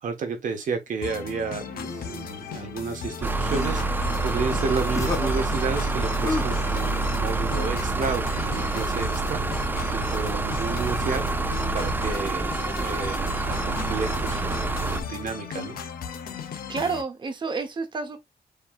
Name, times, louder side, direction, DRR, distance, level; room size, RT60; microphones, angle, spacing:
voice 1, 0.0-9.4 9.9-11.2 11.7-12.5 12.8-15.8, right 5 dB, 50° right, 1.2 m, -31 dB
sound 1, 1.0-17.0, left 7 dB, 60° left, 0.9 m, -37 dB
sound 2, 1.8-2.5 3.4-3.8 4.5-4.6 4.9-5.3 6.2-6.4, left 3 dB, 20° left, 0.9 m, -32 dB
sound 3, 3.2-15.0, right 3 dB, 10° right, 0.4 m, -27 dB
voice 2, 16.7-18.2, right 4 dB, 30° right, 0.9 m, -29 dB
6.9 x 3.0 x 2.4 m
wide cardioid pair, 175°, 17 cm